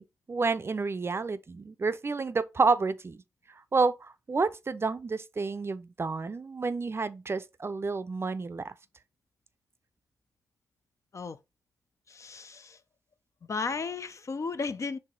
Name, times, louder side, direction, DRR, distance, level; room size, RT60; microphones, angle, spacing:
voice 1, 0.0-3.2 3.5-8.7, right 4 dB, 35° right, 0.5 m, -30 dB
voice 2, 12.1-12.8 13.5-15.0, left 4 dB, 45° left, 0.5 m, -34 dB
4.6 x 3.1 x 3.6 m
supercardioid pair, 45°, 7 cm